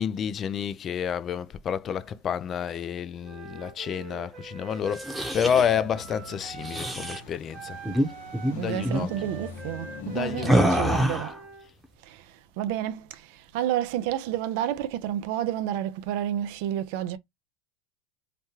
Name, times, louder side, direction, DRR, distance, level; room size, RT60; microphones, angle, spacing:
voice 1, 0.0-7.8 8.5-9.1 10.0-11.2, left 8 dB, 35° left, 0.3 m, -29 dB
Wind instrument woodwind instrument, 3.2-7.3 7.5-11.7, right 6 dB, 40° right, 0.8 m, -44 dB
sound 1, 4.8-5.7 6.6-7.2 7.8-8.1 8.3-8.5 8.8-9.1 10.4-11.4, equal, ahead, 0.9 m, -25 dB
sound 2, 5.4-11.0, left 4 dB, 80° left, 0.8 m, -42 dB
voice 2, 8.5-11.4 12.0-17.2, right 11 dB, 65° right, 0.5 m, -30 dB
3.0 x 2.2 x 2.8 m
hypercardioid pair, 95°, 0 cm